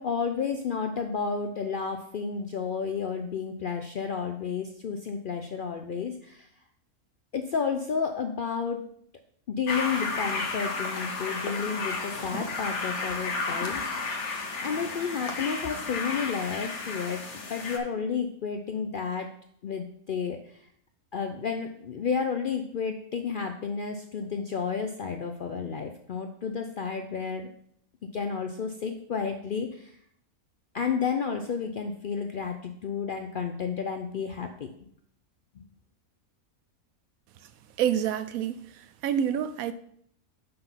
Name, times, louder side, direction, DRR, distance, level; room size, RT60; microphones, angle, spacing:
voice 1, 0.0-6.5 7.3-8.8 9.5-14.1 14.6-17.2 17.5-19.3 19.6-20.4 21.1-27.5 28.1-30.0 30.7-34.7, left 6 dB, 70° left, 5 dB, 0.4 m, -31 dB
sound 1, 9.7-17.8, left 3 dB, 55° left, 1.2 m, -32 dB
voice 2, 37.8-39.7, right 9 dB, 75° right, 13 dB, 1.0 m, -28 dB
5.8 x 5.2 x 5.6 m, 0.66 s
omnidirectional pair, 1.5 m